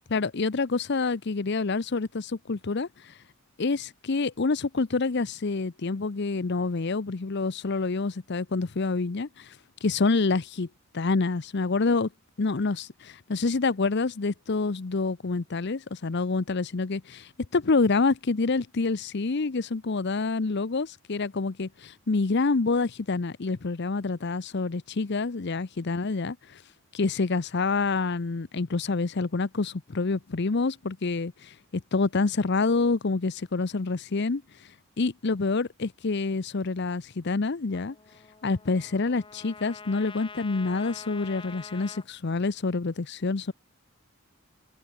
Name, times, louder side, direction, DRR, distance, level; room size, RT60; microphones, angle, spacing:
voice 1, 0.1-3.1 3.6-9.5 9.8-10.7 10.9-12.1 12.4-26.6 26.9-34.4 35.0-37.9 38.4-43.5, left 3 dB, 55° left, 0.7 m, -27 dB
Trumpet, 37.7-42.1, left 4 dB, 25° left, 0.9 m, -45 dB
open air
head